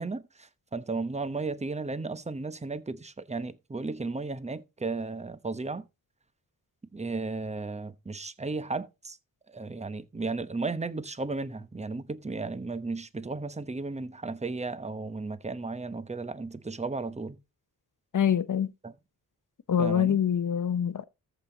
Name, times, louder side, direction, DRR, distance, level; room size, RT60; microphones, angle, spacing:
voice 1, 0.0-5.8 6.9-9.2 9.5-17.4 18.8-18.9 19.8-20.2, right 3 dB, 15° right, 0.9 m, -34 dB
voice 2, 18.1-18.7 19.7-21.0, left 8 dB, 55° left, 0.9 m, -25 dB
14.0 x 5.9 x 3.9 m
cardioid pair, 75°, 38 cm